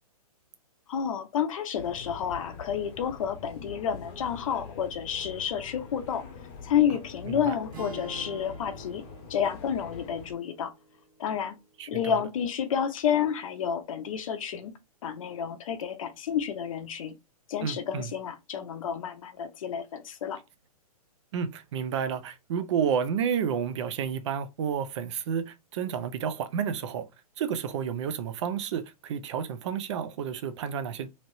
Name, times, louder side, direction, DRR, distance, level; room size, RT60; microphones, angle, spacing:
voice 1, 0.9-6.2 6.6-9.0 9.3-10.7 11.2-11.6 11.9-14.7 15.0-17.1 17.5-20.4, left 8 dB, 60° left, 0.6 m, -30 dB
sound 1, 1.8-10.3, left 5 dB, 25° left, 0.8 m, -44 dB
sound 2, 7.7-11.9, right 2 dB, 15° right, 1.4 m, -47 dB
voice 2, 11.8-12.2 17.6-18.1 21.3-27.1 27.4-31.3, right 7 dB, 50° right, 0.5 m, -31 dB
3.1 x 2.9 x 2.6 m
hypercardioid pair, 155°, 20 cm